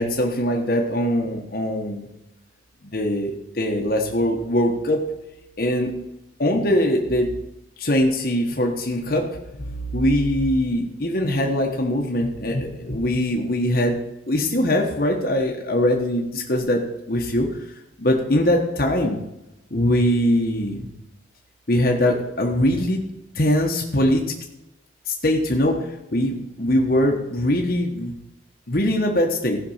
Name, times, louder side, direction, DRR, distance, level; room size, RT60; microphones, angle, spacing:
voice 1, 0.0-2.1 2.8-5.0 5.6-5.9 6.4-7.3 7.8-9.3 9.6-14.0 14.3-16.8 17.1-19.2 19.7-20.9 21.7-23.0 23.3-24.2 25.1-28.1 28.7-29.6, left 1 dB, 50° left, 0 dB, 1.3 m, -22 dB
15.0 x 5.8 x 5.7 m, 0.89 s
head